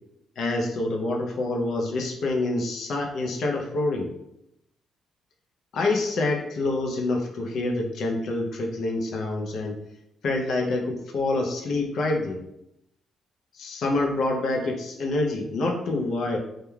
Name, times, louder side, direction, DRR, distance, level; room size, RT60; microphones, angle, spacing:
voice 1, 0.4-4.1 5.7-9.8 10.2-12.4 13.5-16.4, left 2 dB, 65° left, 1 dB, 0.4 m, -26 dB
2.2 x 2.1 x 3.1 m, 0.83 s
cardioid pair, 90°, 0 cm